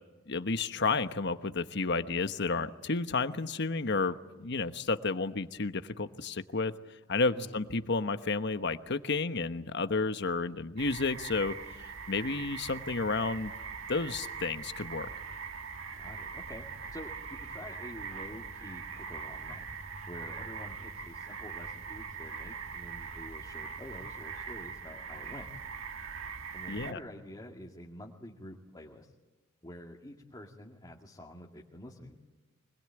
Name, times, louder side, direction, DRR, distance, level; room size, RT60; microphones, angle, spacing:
voice 1, 0.3-6.7 7.1-13.5 13.9-15.1 26.7-27.0, left 3 dB, 60° left, 10 dB, 1.1 m, -31 dB
sound 1, 10.8-26.9, right 5 dB, 80° right, 1.6 m, -42 dB
voice 2, 15.9-19.6 20.0-25.5 26.5-29.1 29.6-32.2, left 1 dB, 20° left, -2 dB, 2.2 m, -48 dB
25.0 x 21.0 x 9.0 m, 1.1 s
head